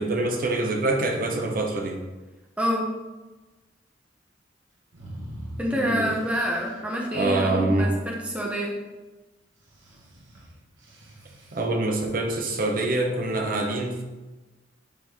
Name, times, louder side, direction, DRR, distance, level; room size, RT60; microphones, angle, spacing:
voice 1, 0.0-2.0 5.7-6.1 7.1-7.9 11.5-14.0, right 2 dB, 50° right, 2 dB, 0.9 m, -25 dB
voice 2, 2.6-2.9 5.6-8.8, equal, 5° right, -2 dB, 0.8 m, -27 dB
sound 1, 4.9-6.8 9.6-11.6, equal, 75° right, 1.6 m, -43 dB
7.7 x 4.1 x 3.6 m, 1.2 s
head